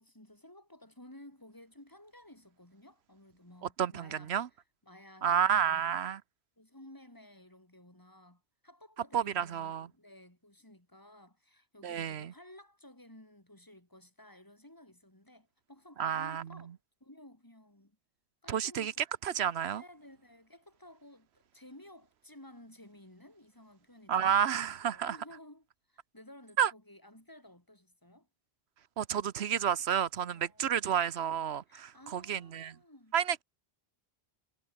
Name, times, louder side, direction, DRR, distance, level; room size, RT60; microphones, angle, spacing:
voice 1, 0.0-4.4 4.8-6.0 6.6-18.0 18.4-18.9 19.7-28.3 30.3-30.8 31.7-33.2, left 1 dB, 20° left, 3.6 m, -55 dB
voice 2, 3.8-4.5 5.2-6.2 9.1-9.9 11.8-12.3 16.0-16.5 18.5-18.9 19.2-19.8 24.1-25.2 26.6-26.7 29.0-32.8 33.1-33.4, right 9 dB, 85° right, 1.1 m, -30 dB
omnidirectional pair, 1.1 m